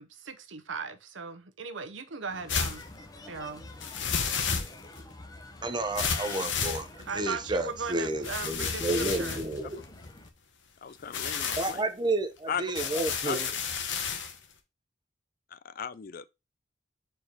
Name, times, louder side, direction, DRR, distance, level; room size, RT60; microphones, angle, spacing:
voice 1, 0.0-2.8 3.3-3.7 7.0-9.4, right 5 dB, 80° right, 0.9 m, -38 dB
Bird, 2.3-10.3, left 2 dB, 20° left, 0.8 m, -47 dB
sound 1, 2.5-2.8 3.8-5.0 6.0-7.2 8.2-10.3 11.0-11.8 12.8-14.4, left 6 dB, 70° left, 1.1 m, -32 dB
voice 2, 5.6-9.8 11.6-13.5, right 2 dB, 25° right, 0.8 m, -31 dB
voice 3, 10.8-11.8 12.5-12.6 13.2-13.4 15.5-16.3, left 7 dB, 50° left, 0.4 m, -36 dB
4.5 x 4.5 x 5.0 m
head